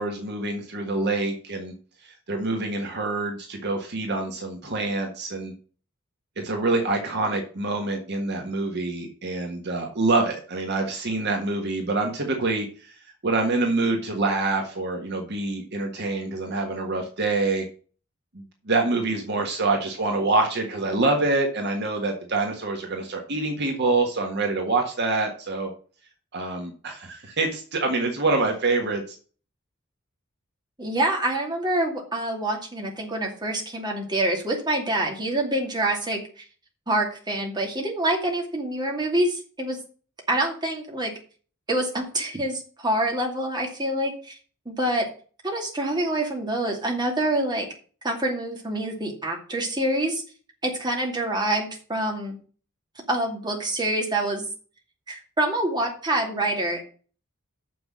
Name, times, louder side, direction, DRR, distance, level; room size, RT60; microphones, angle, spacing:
voice 1, 0.0-1.7 2.0-5.5 6.4-17.7 18.3-25.7 26.3-29.2, right 3 dB, 55° right, 3 dB, 1.6 m, -26 dB
voice 2, 30.8-36.4 36.9-39.8 40.3-41.1 41.7-44.4 44.7-45.1 45.4-47.7 48.0-50.2 50.6-52.4 53.1-54.5 55.1-56.8, right 1 dB, 20° right, 1 dB, 2.6 m, -26 dB
6.9 x 6.2 x 7.3 m, 0.40 s
head